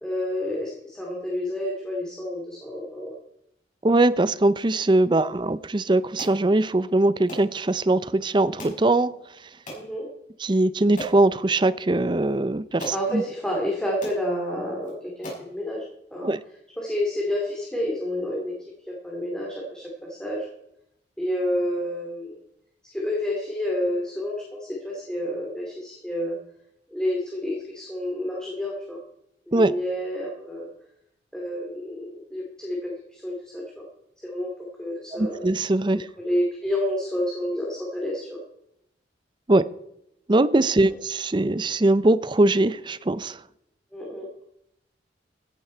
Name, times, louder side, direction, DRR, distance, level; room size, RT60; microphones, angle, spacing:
voice 1, 0.0-3.2 9.7-10.1 12.9-15.8 16.1-16.3 16.8-20.5 21.2-22.4 22.8-26.4 26.9-29.0 29.5-30.7 31.3-33.9 34.2-35.5 36.2-38.4 40.8-40.9 43.9-44.3, left 1 dB, 5° left, 2.6 m, -29 dB
voice 2, 3.8-9.2 10.4-13.2 16.2-16.4 29.5-29.7 35.1-36.1 39.5-39.7 40.3-43.4, right 2 dB, 25° right, 0.5 m, -21 dB
sound 1, 6.2-6.4 7.3-7.5 8.6-8.8 9.7-9.9 10.4-10.5 11.0-11.2 12.3-12.4 12.8-13.0 13.7-13.8 14.0-14.2 14.8-14.9 15.2-15.5, right 1 dB, 45° left, 6.2 m, -36 dB
16.0 x 10.5 x 4.5 m
head